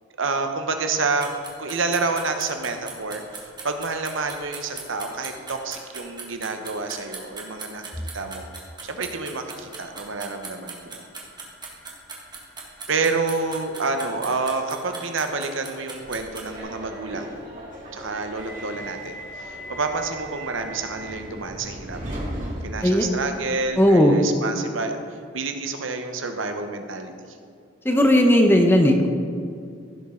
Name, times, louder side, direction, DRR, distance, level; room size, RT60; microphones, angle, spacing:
voice 1, 0.2-8.5 8.8-11.0 12.9-17.3 17.9-22.0 22.6-27.1, right 3 dB, 70° right, 6 dB, 1.0 m, -28 dB
sound 1, 1.2-16.6, right 4 dB, 20° right, 1.6 m, -38 dB
Subway metro underground, 15.9-23.6, right 1 dB, 40° right, 2.3 m, -37 dB
voice 2, 23.8-24.1 27.8-29.1, left 1 dB, 10° left, 3 dB, 0.8 m, -16 dB
15.5 x 7.3 x 3.8 m, 2.4 s
head